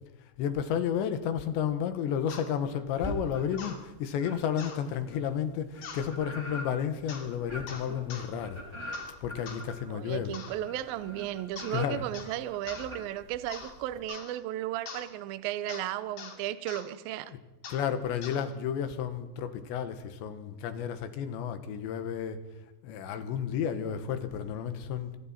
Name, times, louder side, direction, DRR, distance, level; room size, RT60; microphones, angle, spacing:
voice 1, 0.4-8.9 9.2-10.4 11.7-12.1 17.7-22.4 22.8-25.1, left 8 dB, 80° left, 9 dB, 3.7 m, -32 dB
sound 1, 2.3-2.5 3.6-3.8 4.6-4.8 5.8-6.1 7.1-7.3 7.7-8.3 8.9-9.1 9.5-9.7 10.3-10.6 11.6-11.8 12.1-12.4 12.7-12.9 13.5-13.7 14.1-14.3 14.9-15.1 15.7-15.9 16.2-16.4 16.7-16.9 17.6-17.9 18.2-18.4, left 6 dB, 60° left, 4.4 m, -43 dB
sound 2, 3.0-3.8 4.2-14.0, equal, 5° right, 3.8 m, -43 dB
voice 2, 9.9-17.3, right 13 dB, 75° right, 13 dB, 2.3 m, -35 dB
27.0 x 24.5 x 4.4 m, 1.1 s
omnidirectional pair, 5.1 m